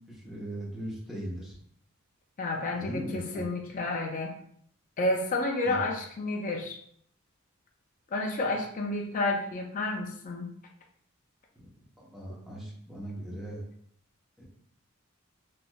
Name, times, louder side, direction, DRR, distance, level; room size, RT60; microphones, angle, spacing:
voice 1, 0.1-1.5 2.7-3.4 5.6-5.8 11.6-11.7 12.0-13.6 14.4-14.5, right 1 dB, ahead, -5 dB, 0.8 m, -39 dB
voice 2, 2.4-4.3 5.0-6.8 8.1-10.5, left 2 dB, 40° left, 1 dB, 0.4 m, -30 dB
3.1 x 2.5 x 2.2 m, 0.64 s
head